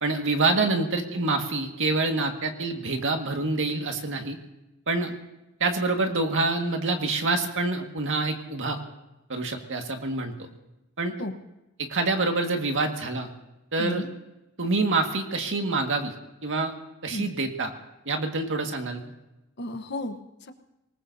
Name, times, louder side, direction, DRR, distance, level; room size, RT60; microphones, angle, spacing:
voice 1, 0.0-4.4 4.9-5.1 5.6-8.8 9.3-10.3 11.0-11.1 11.8-13.3 13.7-14.0 14.6-16.1 16.4-16.7 17.0-17.7 18.1-19.0, right 3 dB, 60° right, 4 dB, 1.9 m, -26 dB
voice 2, 13.8-14.1 17.1-17.3 19.6-20.5, left 1 dB, 50° left, 7 dB, 1.1 m, -33 dB
26.0 x 19.5 x 2.8 m, 0.95 s
head